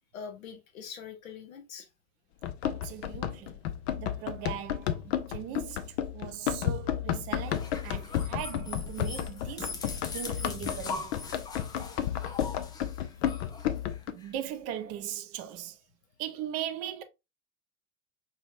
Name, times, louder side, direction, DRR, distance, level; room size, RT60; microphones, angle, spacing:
voice 1, 0.1-1.9 4.1-4.2 11.5-11.6 12.0-12.3, left 6 dB, 65° left, 1.1 m, -44 dB
Run, 2.4-14.1, left 10 dB, 50° left, 0.6 m, -32 dB
voice 2, 2.6-3.6 4.0-11.2 14.1-15.8 16.2-17.0, right 11 dB, 35° right, 0.7 m, -39 dB
sound 1, 7.4-14.3, left 4 dB, 10° left, 0.4 m, -41 dB
5.5 x 2.9 x 2.5 m
figure-of-eight pair, 80°, 44 cm